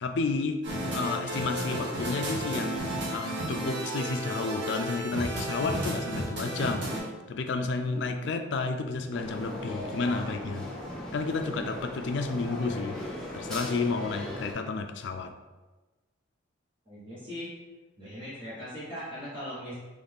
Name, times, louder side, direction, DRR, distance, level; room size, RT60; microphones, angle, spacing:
voice 1, 0.0-7.0 7.3-10.7 11.1-13.0 13.3-15.4, left 3 dB, 60° left, 7 dB, 0.4 m, -31 dB
sound 1, 0.6-7.0, right 1 dB, 60° right, 1.2 m, -33 dB
voice 2, 7.7-8.1 16.9-17.5 18.0-19.7, equal, 25° right, -10 dB, 1.0 m, -40 dB
sound 2, 9.1-14.5, left 1 dB, ahead, 1.0 m, -38 dB
3.9 x 3.2 x 3.5 m, 1.2 s
head